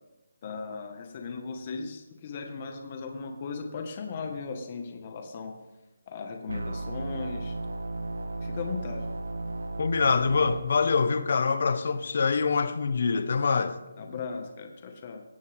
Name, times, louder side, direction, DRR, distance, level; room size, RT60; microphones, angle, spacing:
voice 1, 0.4-5.6 6.1-7.6 8.4-9.1 14.0-15.2, left 4 dB, 30° left, 1.7 m, -37 dB
sound 1, 6.5-10.6, right 2 dB, 85° right, 1.1 m, -34 dB
voice 2, 9.8-13.8, left 5 dB, 50° left, 1.3 m, -25 dB
18.0 x 16.0 x 3.7 m
hypercardioid pair, 170°, 0 cm